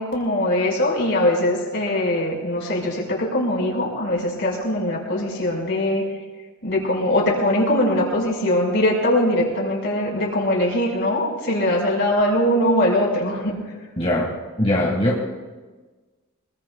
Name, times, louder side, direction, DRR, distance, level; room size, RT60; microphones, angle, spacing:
voice 1, 0.0-6.0 6.6-13.6, left 1 dB, 55° left, -2 dB, 5.3 m, -21 dB
voice 2, 14.0-15.2, left 1 dB, 30° left, -2 dB, 1.8 m, -22 dB
25.0 x 22.0 x 2.4 m, 1.3 s
head